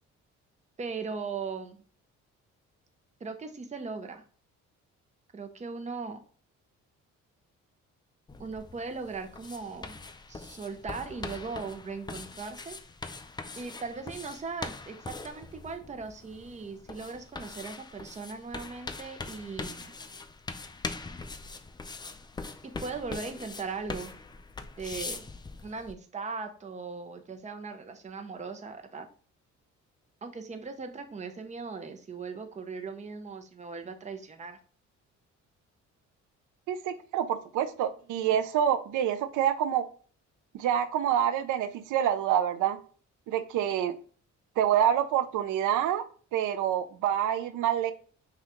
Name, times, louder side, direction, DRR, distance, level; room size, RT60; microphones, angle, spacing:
voice 1, 0.8-1.8 3.2-4.2 5.3-6.2 8.4-10.0 10.3-12.8 13.5-19.9 22.6-24.1 24.8-25.2 25.6-29.1 30.2-34.6, right 4 dB, 25° right, 6 dB, 0.7 m, -39 dB
sound 1, 8.3-25.9, left 3 dB, 15° left, 0.4 m, -42 dB
voice 2, 36.7-39.9 40.5-42.8 43.3-44.0 44.6-46.0 46.3-47.9, right 10 dB, 85° right, 11 dB, 0.5 m, -27 dB
5.6 x 2.4 x 3.0 m, 0.42 s
cardioid pair, 90°, 30 cm